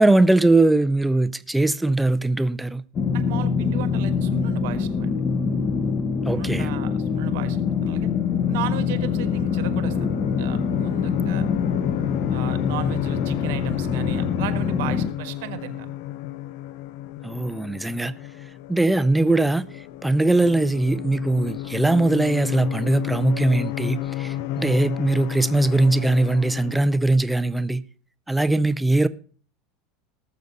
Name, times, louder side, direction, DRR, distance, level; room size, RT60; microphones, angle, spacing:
voice 1, 0.0-2.8 6.3-6.7 17.2-18.1 18.7-19.7 20.0-27.8 28.3-29.1, right 2 dB, 5° right, 0.5 m, -20 dB
sound 1, 2.9-15.1, left 6 dB, 30° left, 1.0 m, -24 dB
voice 2, 3.1-5.2 6.3-8.1 8.5-10.1 10.4-11.5 12.3-15.9, right 11 dB, 75° right, 1.5 m, -35 dB
sound 2, 7.5-27.0, left 13 dB, 65° left, 0.7 m, -32 dB
18.5 x 6.8 x 3.9 m
supercardioid pair, 145°, 0 cm